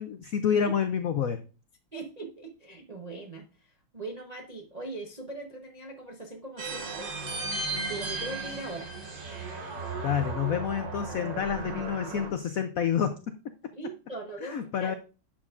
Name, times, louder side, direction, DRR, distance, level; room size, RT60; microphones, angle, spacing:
voice 1, 0.0-1.4 10.0-13.3 14.4-14.9, left 8 dB, 85° left, 8 dB, 0.7 m, -28 dB
voice 2, 1.9-7.1 7.9-8.9 13.7-14.9, right 2 dB, 35° right, 1 dB, 0.7 m, -40 dB
sound 1, 6.6-12.3, right 3 dB, 65° right, 2.1 m, -35 dB
11.0 x 7.6 x 2.5 m, 0.34 s
omnidirectional pair, 2.2 m